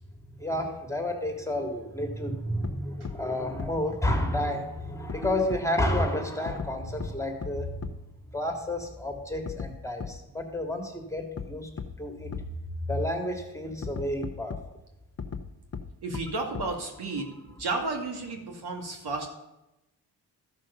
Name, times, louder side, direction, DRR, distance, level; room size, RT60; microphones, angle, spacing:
voice 1, 0.4-7.7 8.3-11.7 12.0-12.3 12.9-14.6, left 1 dB, 5° left, 3 dB, 2.2 m, -30 dB
sound 1, 2.6-2.7 3.0-3.1 3.6-3.7 5.1-5.9 6.5-6.7 7.0-7.1 7.4-7.5 7.8-7.9 9.5-9.7 10.0-10.1 11.4-11.5 11.8-11.9 12.3-12.4 13.8-14.6 15.2-15.4 15.7-15.8 16.1-16.2 16.5-16.6, left 6 dB, 35° left, 1.0 m, -35 dB
voice 2, 16.0-17.3 17.6-19.3, right 3 dB, 60° right, 2 dB, 2.2 m, -32 dB
13.0 x 6.3 x 5.6 m, 0.93 s
supercardioid pair, 55°, 43 cm